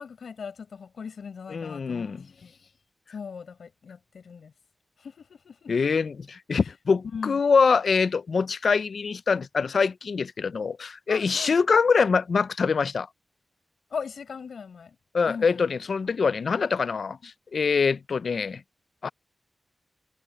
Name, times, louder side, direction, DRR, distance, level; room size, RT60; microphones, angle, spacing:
voice 1, 0.0-2.1 2.4-2.5 3.1-4.5 5.0-5.7 7.1-7.4 11.1-11.6 13.9-15.0 15.3-15.7, left 6 dB, 90° left, 6.1 m, -39 dB
voice 2, 1.5-2.2 5.7-13.1 15.1-18.6 19.0-19.1, left 5 dB, 65° left, 0.4 m, -24 dB
wide cardioid pair, 120°, 0 cm